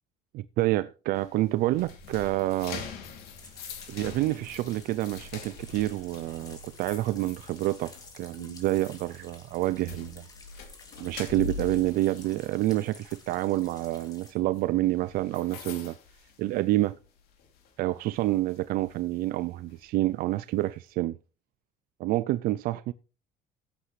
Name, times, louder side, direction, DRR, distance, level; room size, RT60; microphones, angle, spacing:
voice 1, 0.3-2.9 3.9-10.2 11.0-16.0 16.4-17.0 17.8-21.2 22.0-22.9, right 17 dB, 70° right, 0.4 m, -28 dB
sound 1, 1.1-17.1 17.4-17.7 18.2-19.8, left 6 dB, 75° left, 2.8 m, -44 dB
sound 2, 3.4-14.3, left 3 dB, 25° left, 2.6 m, -52 dB
15.5 x 8.1 x 3.2 m
cardioid pair, 135°, 16 cm